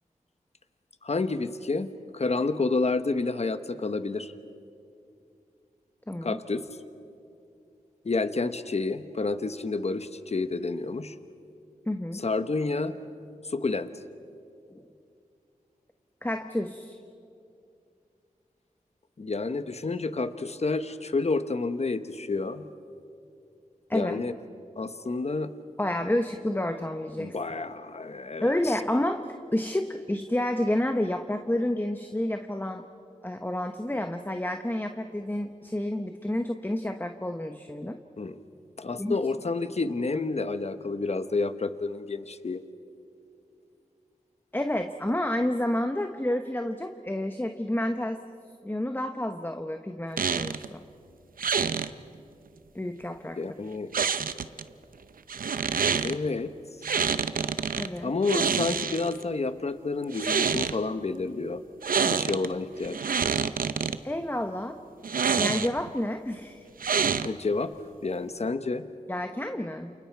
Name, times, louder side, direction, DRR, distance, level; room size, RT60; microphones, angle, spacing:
voice 1, 1.0-1.9 2.1-4.3 6.2-6.6 8.0-11.1 12.1-12.9 13.5-13.9 19.2-22.7 23.9-24.3 24.8-25.5 27.2-28.6 38.2-38.4 38.8-42.6 53.4-53.9 55.9-56.5 56.8-57.0 58.0-61.6 62.1-63.0 67.2-67.7 68.0-68.8, left 3 dB, 50° left, 11 dB, 1.1 m, -29 dB
voice 2, 6.1-6.4 11.9-12.2 14.7-14.9 16.2-17.0 23.9-24.2 25.8-27.3 28.4-32.8 33.2-38.0 39.0-39.2 44.5-48.2 48.6-50.8 52.7-53.4 57.8-58.1 64.0-64.8 65.4-66.6 69.1-69.9, left 1 dB, 15° left, 6 dB, 1.1 m, -29 dB
sound 1, 50.2-50.7 51.4-51.9 53.9-54.6 55.3-56.1 56.8-57.9 58.2-59.2 60.0-60.8 61.8-62.5 62.8-64.0 65.0-65.9 66.8-67.5, right 6 dB, 80° right, 0.7 m, -27 dB
29.0 x 28.5 x 4.6 m, 2.5 s
cardioid pair, 55°, 14 cm